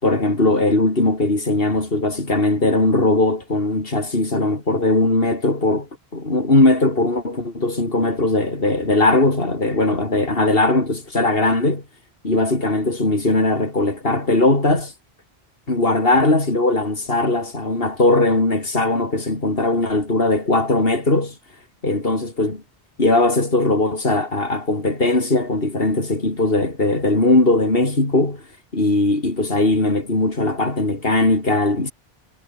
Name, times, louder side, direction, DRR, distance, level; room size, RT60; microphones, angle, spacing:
voice 1, 0.0-11.8 12.2-14.9 15.7-21.3 21.8-22.6 23.0-28.4 28.7-31.9, left 2 dB, 60° left, 4.6 m, -19 dB
omnidirectional pair, 1.1 m